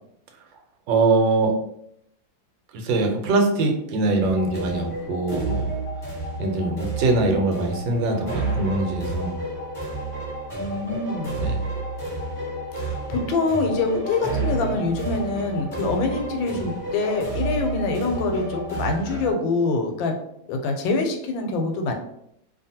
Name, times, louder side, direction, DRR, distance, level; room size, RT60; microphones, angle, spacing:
voice 1, 0.9-1.5 2.7-5.7 6.4-9.4 10.9-11.0 11.3-11.6, right 3 dB, 85° right, 3 dB, 1.3 m, -23 dB
sound 1, 4.2-19.3, right 2 dB, 15° right, 1.2 m, -30 dB
voice 2, 10.6-11.4 12.8-20.1 20.5-21.9, left 3 dB, 85° left, 4 dB, 1.3 m, -25 dB
2.8 x 2.5 x 2.7 m, 0.74 s
omnidirectional pair, 2.0 m